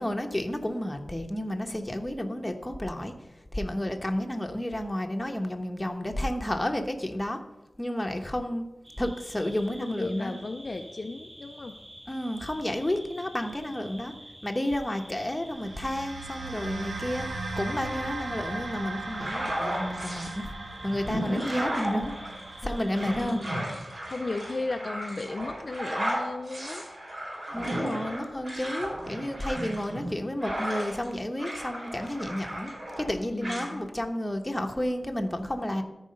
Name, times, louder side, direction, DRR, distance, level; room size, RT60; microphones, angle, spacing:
voice 1, 0.0-3.1 3.5-7.4 7.8-8.7 9.0-10.3 12.1-14.1 14.4-17.3 17.6-20.5 20.8-22.1 22.6-23.4 27.5-32.7 33.0-35.8, left 1 dB, 15° left, 4 dB, 1.0 m, -31 dB
sound 1, 8.8-23.6, equal, 35° right, 2.0 m, -48 dB
voice 2, 9.8-11.8 22.6-23.7 24.1-26.9 33.3-33.9, left 3 dB, 50° left, 5 dB, 0.5 m, -35 dB
sound 2, 15.5-26.0, right 2 dB, 85° right, 1.1 m, -39 dB
sound 3, 19.1-20.3 20.8-31.1 31.4-33.1 33.4-33.7, equal, 55° right, 4.0 m, -34 dB
13.5 x 4.8 x 5.4 m, 1.0 s
wide cardioid pair, 95°, 0 cm